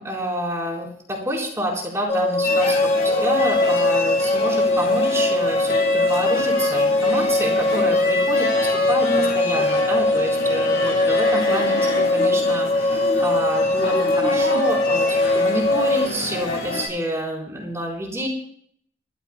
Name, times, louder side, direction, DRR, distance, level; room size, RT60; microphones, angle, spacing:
voice 1, 0.0-18.3, equal, 15° right, -2 dB, 4.0 m, -28 dB
sound 1, 2.1-16.1, left 2 dB, 35° left, 1.3 m, -21 dB
sound 2, 2.4-16.9, left 2 dB, 70° left, 7.5 m, -28 dB
26.0 x 14.0 x 2.2 m, 0.63 s
head